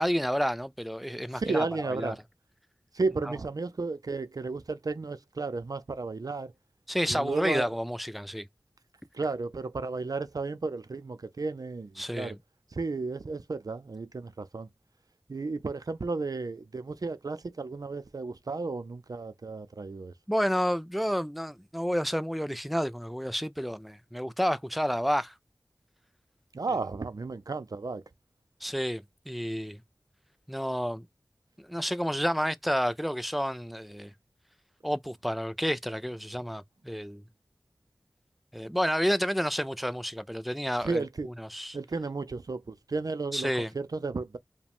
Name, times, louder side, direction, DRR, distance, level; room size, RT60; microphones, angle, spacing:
voice 1, 0.0-2.2 6.9-8.5 12.0-12.4 20.3-25.3 28.6-29.8 30.5-31.1 31.6-34.1 34.8-37.2 38.5-41.8 43.3-43.7, equal, ahead, 0.4 m, -30 dB
voice 2, 1.3-2.2 2.9-6.5 7.1-7.7 9.1-12.4 12.7-14.7 15.3-20.1 26.5-28.0 40.8-41.3 41.7-44.4, right 3 dB, 60° right, 0.5 m, -33 dB
4.8 x 2.2 x 3.5 m
wide cardioid pair, 45°, 7 cm